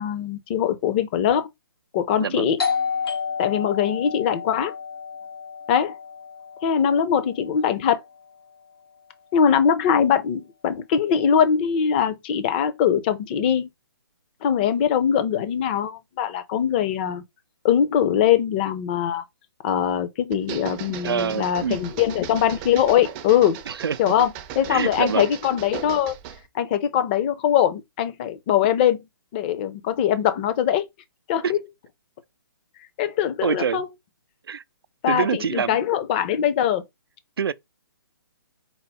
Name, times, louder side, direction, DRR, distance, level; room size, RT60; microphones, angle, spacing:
voice 1, 0.0-1.5 1.9-2.6 3.4-4.7 5.7-6.0 6.6-8.0 9.3-13.7 14.4-17.2 17.6-19.2 19.6-23.6 24.0-26.1 26.5-29.0 29.3-30.9 31.3-31.6 33.0-33.9 35.0-36.8, left 9 dB, 25° left, 0.5 m, -22 dB
Doorbell, 2.6-8.0, left 6 dB, 85° left, 1.2 m, -31 dB
sound 1, 20.3-26.5, right 9 dB, 20° right, 0.5 m, -37 dB
voice 2, 20.9-21.8 23.7-24.1 24.7-25.3 33.4-33.8 34.5-34.6 35.1-35.8 37.4-37.5, right 7 dB, 90° right, 0.4 m, -26 dB
4.4 x 2.0 x 4.0 m
hypercardioid pair, 155°, 12 cm